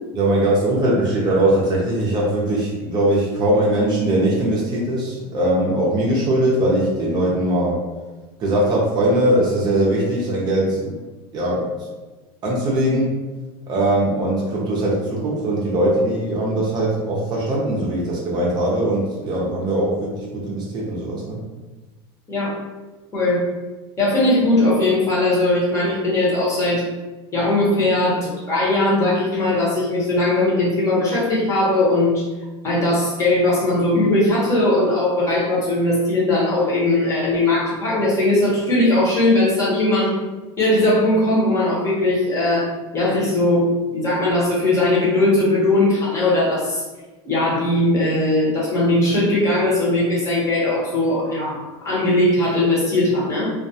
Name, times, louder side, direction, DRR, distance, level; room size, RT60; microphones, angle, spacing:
voice 1, 0.1-7.8 8.4-11.0 11.3-11.7 12.4-13.1 13.7-21.4, right 1 dB, 30° right, -4 dB, 0.6 m, -20 dB
voice 2, 23.1-23.5 24.0-26.8 27.3-32.3 32.6-40.1 40.6-46.8 47.2-53.5, left 1 dB, 20° left, -6 dB, 0.9 m, -19 dB
2.3 x 2.2 x 2.7 m, 1.2 s
supercardioid pair, 135°, 14 cm